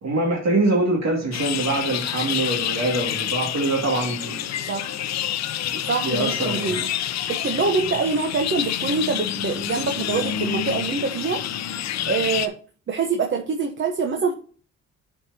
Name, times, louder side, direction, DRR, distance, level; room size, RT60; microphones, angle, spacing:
voice 1, 0.0-4.5 5.7-6.8, right 2 dB, 60° right, 0 dB, 2.2 m, -24 dB
sound 1, 1.3-12.5, left 10 dB, 60° left, 0.6 m, -28 dB
voice 2, 5.9-6.9 7.3-11.4 12.1-12.5 12.9-14.3, right 4 dB, 40° right, 4 dB, 1.0 m, -25 dB
10.0 x 4.7 x 2.8 m, 0.42 s
cardioid pair, 90°, 30 cm